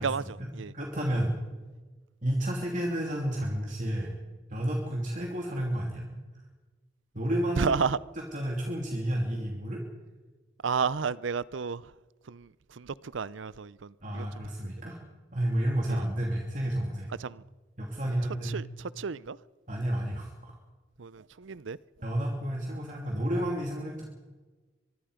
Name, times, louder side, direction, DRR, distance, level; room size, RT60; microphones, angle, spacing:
voice 1, 0.0-1.4 2.2-4.1 4.5-6.1 7.1-7.7 8.1-9.8 14.0-15.0 15.3-17.1 17.8-18.5 19.7-20.5 22.0-24.1, right 1 dB, 40° right, 2.8 m, -31 dB
voice 2, 7.6-8.0 10.6-11.8 12.3-12.5 12.8-14.3 15.9-16.0 17.2-17.4 18.4-18.7 19.0-19.4 21.0-21.8, right 5 dB, 90° right, 0.6 m, -31 dB
24.0 x 22.5 x 5.1 m
head